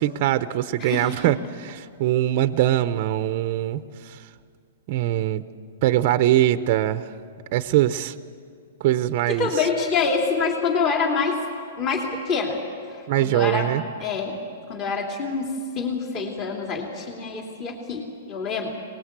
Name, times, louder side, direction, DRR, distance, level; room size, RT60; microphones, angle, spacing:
voice 1, 0.0-4.2 4.9-5.4 5.8-7.1 7.5-8.1 8.8-9.5 13.1-13.8, right 13 dB, 45° right, 11 dB, 0.7 m, -22 dB
voice 2, 0.8-1.2 9.2-11.4 11.8-12.6 12.9-13.7 14.0-14.4 14.7-18.7, left 4 dB, 30° left, 0 dB, 3.0 m, -26 dB
24.0 x 20.0 x 8.1 m, 2.3 s
hypercardioid pair, 150°, 0 cm